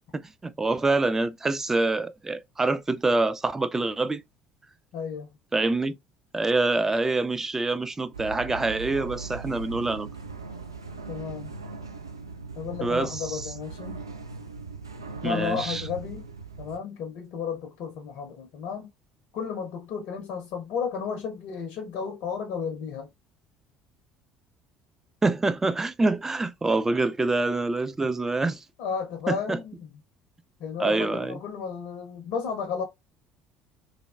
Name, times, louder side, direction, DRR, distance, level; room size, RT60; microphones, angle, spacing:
voice 1, 0.1-4.2 5.5-6.0 6.3-10.1 12.8-13.4 15.2-15.8 25.2-28.6 29.3-29.6 30.8-31.4, right 3 dB, 20° right, 0.4 m, -26 dB
voice 2, 4.9-5.3 11.1-11.5 12.5-14.0 15.2-16.2 16.6-18.9 19.3-23.1 28.8-29.9 30.6-32.8, left 6 dB, 60° left, 0.6 m, -33 dB
sound 1, 8.1-16.8, right 4 dB, 90° right, 0.3 m, -39 dB
3.3 x 2.2 x 2.3 m
figure-of-eight pair, 60°, 2 cm